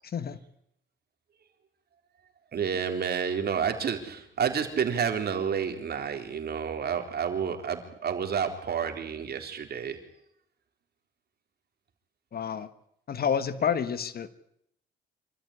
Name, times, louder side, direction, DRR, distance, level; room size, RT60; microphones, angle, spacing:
voice 1, 2.5-10.0, right 7 dB, 55° right, 6 dB, 3.9 m, -30 dB
voice 2, 12.3-12.7 13.1-14.3, left 7 dB, 50° left, 14 dB, 1.4 m, -29 dB
26.5 x 14.0 x 9.9 m, 0.77 s
cardioid pair, 90°, 20 cm